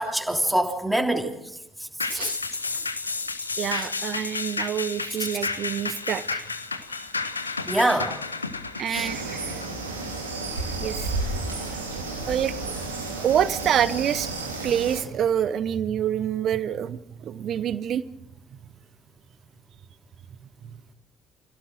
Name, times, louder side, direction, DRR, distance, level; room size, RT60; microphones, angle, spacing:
voice 1, 0.0-1.3 3.7-3.9 7.7-8.1 8.9-9.1, right 1 dB, 5° right, 2 dB, 3.2 m, -24 dB
sound 1, 2.0-10.7 11.1-11.2, left 4 dB, 85° left, 0.8 m, -32 dB
voice 2, 2.1-2.4 3.6-6.4 7.0-7.1 8.8-9.6 10.8-11.1 12.3-12.8 13.2-14.3 14.6-18.0 18.5-18.6, right 9 dB, 50° right, 17 dB, 1.0 m, -27 dB
sound 2, 8.9-15.0, right 3 dB, 85° right, 2.4 m, -32 dB
27.0 x 16.5 x 6.4 m, 0.89 s
figure-of-eight pair, 45°, 0 cm